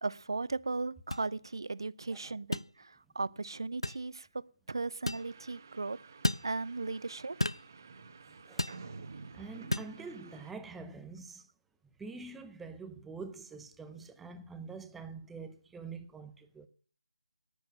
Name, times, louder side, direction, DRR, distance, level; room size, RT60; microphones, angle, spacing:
voice 1, 0.0-4.3 4.7-6.0 6.4-7.4, right 3 dB, 55° right, 0.7 m, -37 dB
sound 1, 1.1-1.3 2.5-2.7 3.8-4.0 5.1-5.3 6.2-6.5 7.4-7.7 8.6-8.8 9.7-9.9, left 1 dB, 85° left, 0.5 m, -32 dB
sound 2, 5.1-10.5, right 4 dB, 35° right, 1.3 m, -51 dB
voice 2, 8.3-8.9 9.3-11.5 12.0-16.7, right 4 dB, 5° right, 0.6 m, -46 dB
10.0 x 9.8 x 6.3 m
figure-of-eight pair, 155°, 3 cm